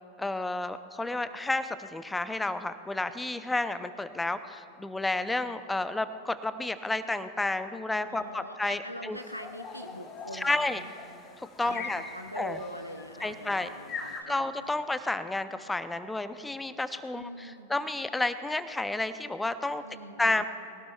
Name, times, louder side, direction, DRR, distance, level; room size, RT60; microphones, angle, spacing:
voice 1, 0.2-9.2 10.3-10.8 11.6-12.0 12.4-12.6 13.2-13.7 14.3-19.8 20.2-20.4, left 2 dB, 5° left, 12 dB, 0.6 m, -31 dB
voice 2, 8.1-10.9 11.6-14.7 17.1-17.7 19.8-20.4, equal, 90° left, 6 dB, 0.8 m, -43 dB
sound 1, 9.2-14.2, left 5 dB, 25° left, 1.6 m, -43 dB
22.5 x 17.0 x 2.4 m, 2.6 s
figure-of-eight pair, 90°, 0 cm